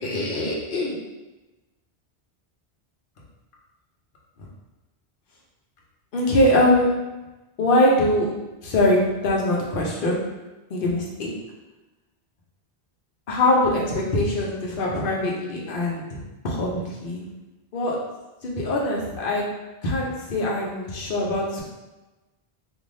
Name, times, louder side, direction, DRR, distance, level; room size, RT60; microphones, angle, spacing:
voice 1, 0.0-1.0 6.1-7.0 7.6-8.3 8.6-10.2 10.7-11.3 13.3-16.2 16.4-17.3 17.7-18.0 18.4-19.5 19.8-21.6, left 1 dB, 60° left, -3 dB, 0.9 m, -22 dB
3.2 x 2.6 x 2.6 m, 1.1 s
omnidirectional pair, 1.0 m